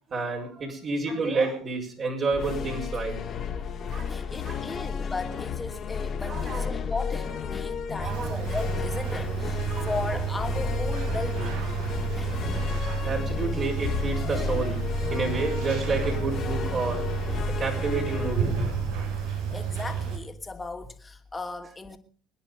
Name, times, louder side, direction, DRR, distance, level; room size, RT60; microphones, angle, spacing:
voice 1, 0.1-3.5 3.8-4.9 6.3-6.8 8.0-8.5 9.7-10.2 12.0-12.2 13.0-17.0 17.5-18.8, right 3 dB, 40° right, 5.7 m, -30 dB
sound 1, 2.3-19.7, left 6 dB, 45° left, 2.8 m, -32 dB
voice 2, 4.1-11.6 12.1-12.4 13.0-13.1 14.4-14.5 18.6-18.8 19.2-22.0, left 3 dB, 15° left, 2.8 m, -36 dB
sound 2, 8.0-20.2, right 8 dB, 75° right, 7.0 m, -31 dB
24.5 x 10.5 x 5.3 m
hypercardioid pair, 75°, 0 cm